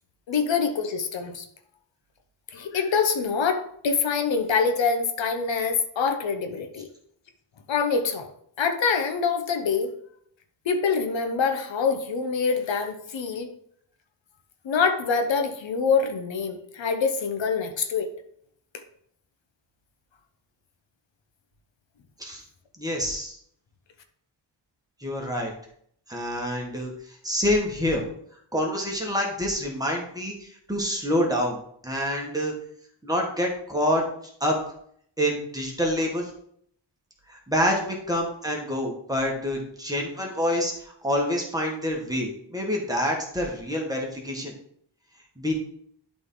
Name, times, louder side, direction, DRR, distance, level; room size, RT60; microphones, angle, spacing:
voice 1, 0.3-1.4 2.5-6.9 7.7-8.3 8.6-9.9 10.6-13.5 14.6-18.1, left 5 dB, 85° left, 7 dB, 1.0 m, -25 dB
voice 2, 22.8-23.4 25.0-25.5 26.1-26.9 27.2-28.1 28.5-32.5 33.0-34.0 34.4-34.6 35.2-36.3 37.3-44.5 45.4-45.5, equal, 10° right, -1 dB, 1.6 m, -27 dB
11.5 x 4.2 x 3.8 m, 0.67 s
wide cardioid pair, 165°, 44 cm